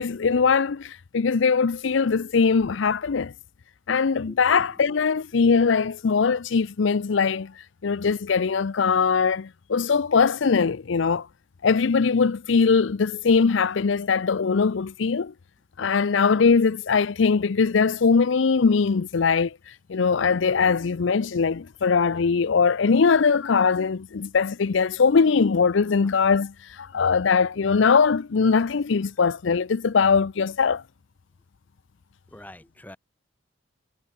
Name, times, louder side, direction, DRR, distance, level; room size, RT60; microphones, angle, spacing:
voice 1, 0.0-3.3 3.9-7.5 7.8-11.3 11.6-15.3 15.8-19.6 19.9-30.8, left 5 dB, 70° left, 0.5 m, -21 dB
voice 2, 4.3-4.8 32.3-33.0, left 1 dB, 10° left, 1.2 m, -44 dB
head